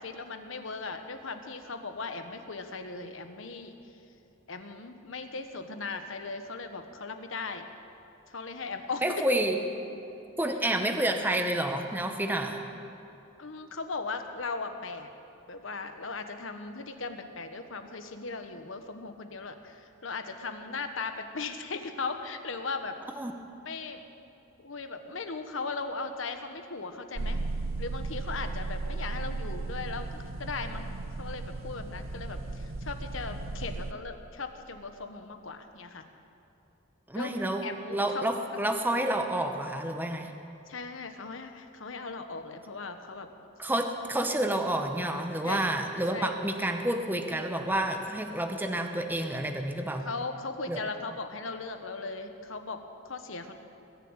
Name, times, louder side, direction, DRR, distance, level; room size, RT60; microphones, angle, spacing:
voice 1, 0.0-3.8 4.5-7.6 8.3-9.2 13.4-15.1 15.5-22.9 23.6-24.0 24.6-27.4 27.8-30.9 31.2-36.0 37.1-37.4 37.6-38.3 40.7-43.3 45.4-45.7 46.1-46.3 50.0-52.8 53.0-53.5, left 4 dB, 75° left, 7 dB, 1.2 m, -38 dB
voice 2, 9.0-9.6 10.4-12.6 23.1-23.3 37.1-37.6 37.9-40.3 43.6-50.1 50.7-50.8, right 1 dB, 10° right, 5 dB, 0.9 m, -29 dB
sound 1, 27.2-33.9, right 3 dB, 85° right, 0.7 m, -35 dB
20.5 x 7.3 x 8.9 m, 2.9 s
head